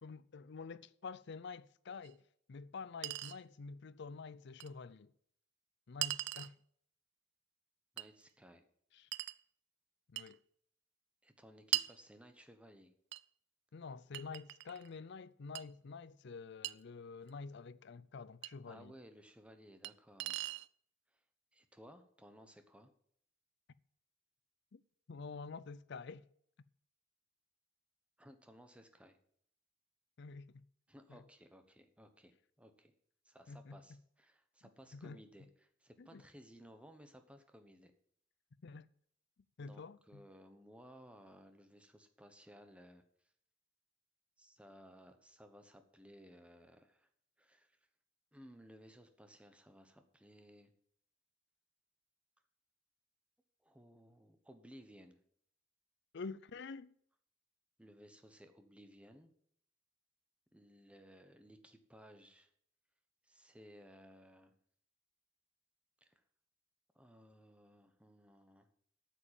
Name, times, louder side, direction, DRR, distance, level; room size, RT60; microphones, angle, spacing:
voice 1, 0.0-2.2 2.5-5.1 5.9-6.6 8.9-9.1 10.1-10.4 13.7-18.9 24.7-24.8 25.1-26.2 30.2-30.6 31.1-31.2 33.5-34.0 34.9-35.2 36.0-36.2 38.6-38.9 39.6-40.2 56.1-56.9, left 4 dB, 65° left, 0.5 m, -48 dB
Chink clink, 2.0-2.1 3.0-3.4 4.6-4.7 6.0-6.5 8.0-8.1 9.1-9.4 10.2-10.3 11.7-12.0 13.1-13.2 14.1-14.9 15.6-15.7 16.6-16.8 18.4-18.5 19.8-19.9 20.2-20.7, right 16 dB, 60° right, 0.3 m, -39 dB
voice 2, 7.9-8.7 11.2-12.9 18.7-20.5 21.5-22.9 28.2-29.2 30.9-32.3 32.6-32.9 33.2-37.9 39.6-43.0 44.4-47.1 47.4-47.7 48.3-50.7 53.6-55.2 57.8-59.3 60.5-62.5 63.3-64.5 66.0-66.1 66.9-68.7, equal, 5° right, 1.1 m, -59 dB
8.6 x 7.3 x 8.9 m
head